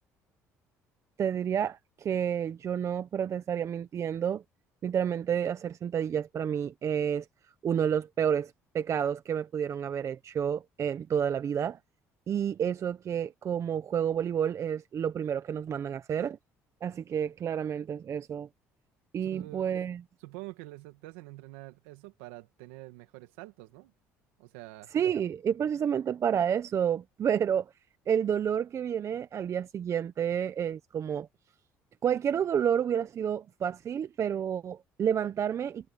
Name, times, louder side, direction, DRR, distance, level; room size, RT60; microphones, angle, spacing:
voice 1, 1.2-4.4 4.8-7.2 7.6-11.8 12.3-16.4 16.8-18.5 19.1-20.0 24.9-27.6 28.1-31.3 32.0-35.9, right 8 dB, 50° right, 1.1 m, -30 dB
voice 2, 19.2-19.8 20.2-23.9 24.4-24.9, right 20 dB, 90° right, 2.1 m, -46 dB
supercardioid pair, 75°, 7 cm